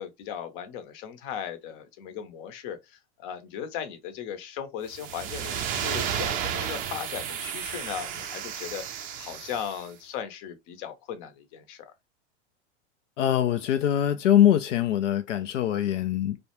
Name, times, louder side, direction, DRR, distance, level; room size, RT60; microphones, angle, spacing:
voice 1, 0.0-11.9, left 9 dB, 45° left, 0.8 m, -37 dB
sound 1, 4.9-9.8, right 9 dB, 25° right, 0.4 m, -33 dB
voice 2, 13.2-16.4, left 11 dB, 85° left, 0.5 m, -23 dB
2.3 x 2.1 x 3.0 m
hypercardioid pair, 115°, 36 cm